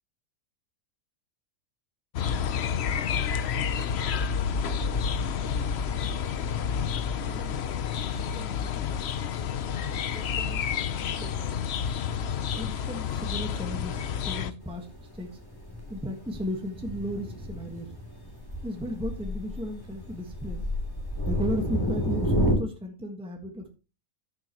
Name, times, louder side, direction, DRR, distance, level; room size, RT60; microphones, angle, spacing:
sound 1, 2.1-14.5, left 7 dB, 60° left, 0.9 m, -29 dB
voice 1, 7.1-7.6 8.1-9.0 10.0-10.7 11.1-11.6 12.5-15.4 15.9-17.9 18.6-20.6 21.2-23.7, equal, 5° right, 1.5 m, -36 dB
Thunder, 14.6-22.5, equal, 15° left, 2.8 m, -31 dB
13.5 x 7.9 x 3.0 m
omnidirectional pair, 1.4 m